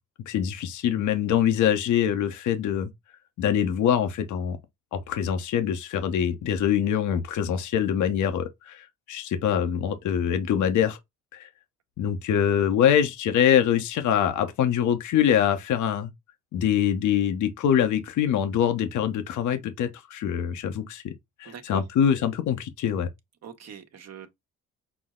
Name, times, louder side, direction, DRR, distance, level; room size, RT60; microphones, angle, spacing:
voice 1, 0.3-2.9 3.4-4.6 4.9-11.0 11.3-11.5 12.0-16.1 16.5-21.1 21.4-23.1, left 9 dB, 75° left, 0.8 m, -24 dB
voice 2, 21.4-21.8 23.4-24.3, right 8 dB, 60° right, 1.1 m, -42 dB
6.1 x 2.0 x 3.6 m
cardioid pair, 90°, 30 cm